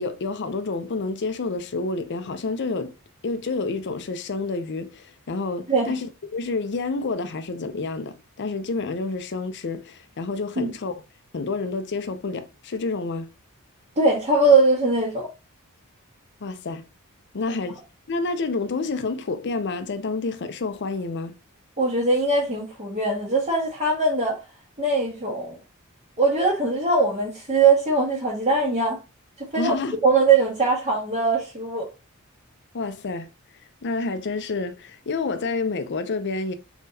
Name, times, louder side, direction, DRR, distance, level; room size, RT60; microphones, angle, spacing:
voice 1, 0.0-2.9 3.2-10.9 11.3-13.3 16.4-16.9 17.3-17.8 18.1-21.4 29.6-30.0 32.7-33.3 33.8-36.5, left 3 dB, 55° left, 0.6 m, -29 dB
voice 2, 14.0-15.3 21.8-24.4 24.8-25.6 26.2-29.0 29.4-29.7 30.0-31.9, right 3 dB, 30° right, 1.3 m, -21 dB
3.9 x 3.8 x 2.7 m
head